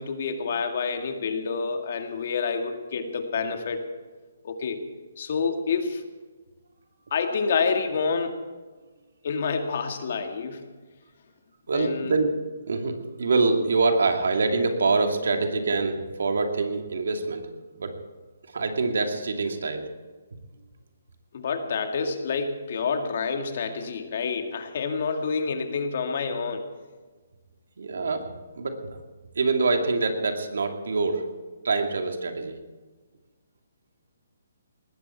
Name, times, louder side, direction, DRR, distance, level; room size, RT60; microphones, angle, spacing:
voice 1, 0.0-3.8 4.4-4.8 5.2-6.0 7.1-8.4 9.2-10.7 11.7-12.1 21.3-26.7, left 5 dB, 50° left, 5 dB, 2.1 m, -28 dB
voice 2, 11.7-12.3 12.7-17.5 17.8-17.9 18.5-19.8 27.8-28.3 28.6-29.0 29.3-31.2 31.6-32.6, right 3 dB, 75° right, 4 dB, 2.5 m, -25 dB
19.5 x 15.0 x 4.5 m, 1.3 s
hypercardioid pair, 160°, 0 cm